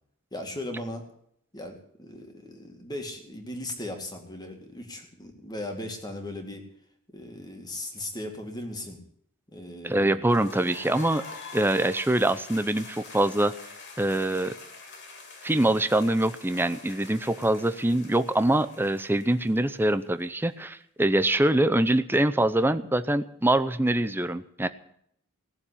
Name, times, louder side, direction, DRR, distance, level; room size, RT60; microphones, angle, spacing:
voice 1, 0.3-1.0 1.5-6.7 7.1-9.0 9.5-11.0, left 1 dB, 20° left, 3 dB, 2.3 m, -38 dB
voice 2, 9.8-11.2 11.5-13.5 14.0-14.5 15.4-24.7, right 1 dB, 10° right, 12 dB, 0.6 m, -24 dB
sound 1, 10.3-20.1, left 4 dB, 50° left, 2.8 m, -45 dB
18.0 x 7.2 x 10.0 m, 0.70 s
head